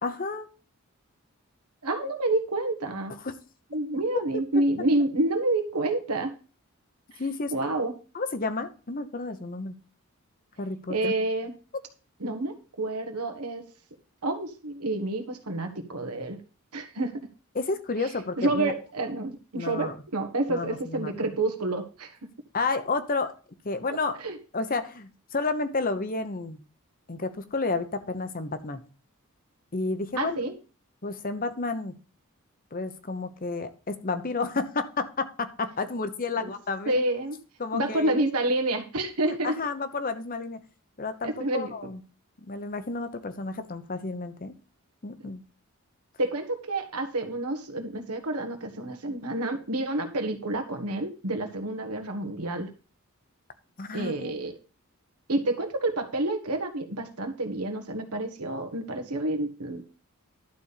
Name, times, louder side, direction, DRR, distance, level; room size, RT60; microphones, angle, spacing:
voice 1, 0.0-0.5 3.2-3.3 4.8-4.9 7.2-7.5 8.1-9.8 10.6-11.1 17.5-18.7 19.6-19.9 20.5-21.1 22.5-23.3 23.6-24.2 24.5-26.6 27.1-28.8 29.7-30.5 31.0-32.0 32.7-37.0 37.6-38.2 39.3-40.6 41.0-42.0 42.4-44.6 45.0-45.4 53.8-54.3, left 3 dB, 40° left, 10 dB, 0.9 m, -31 dB
voice 2, 1.8-3.1 3.7-6.3 7.1-7.2 7.5-7.9 10.9-11.5 12.2-13.6 14.2-16.4 16.7-17.2 18.0-18.1 18.4-22.2 23.9-24.4 30.2-30.5 36.4-36.5 36.9-37.4 37.7-39.6 41.2-41.7 45.2-45.3 46.2-52.7 53.9-54.5 55.3-59.9, right 2 dB, 90° right, 7 dB, 1.5 m, -29 dB
11.5 x 4.3 x 6.7 m, 0.36 s
head